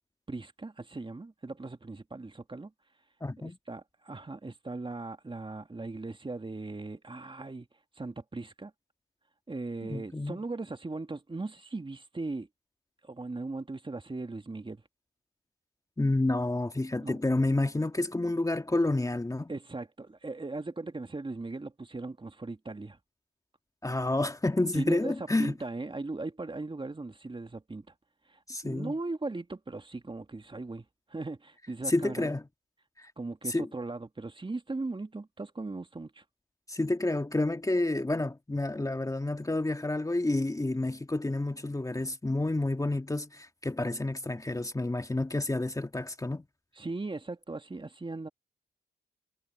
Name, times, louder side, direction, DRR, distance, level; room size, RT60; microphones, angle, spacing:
voice 1, 0.3-2.7 3.4-7.7 8.0-8.7 9.5-12.5 13.0-14.8 17.0-17.2 19.5-23.0 24.7-27.9 28.3-30.8 31.1-32.3 33.2-36.2 46.8-48.3, right 3 dB, 25° right, 2.4 m, -38 dB
voice 2, 3.2-3.6 9.9-10.4 16.0-19.5 23.8-25.5 28.5-28.9 31.9-32.4 33.0-33.1 33.5-33.7 36.7-46.4, left 2 dB, 15° left, 1.9 m, -29 dB
supercardioid pair, 45°, 19 cm